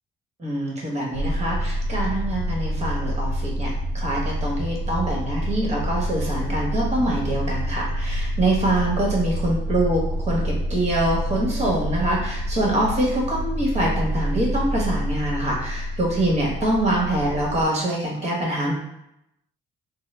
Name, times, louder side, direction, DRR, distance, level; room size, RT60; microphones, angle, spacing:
voice 1, 0.4-10.0 10.3-18.7, right 1 dB, 35° right, -3 dB, 1.3 m, -24 dB
sound 1, 1.1-17.6, equal, 65° right, 0.5 m, -27 dB
3.6 x 2.1 x 3.3 m, 0.81 s
cardioid pair, 90°, 20 cm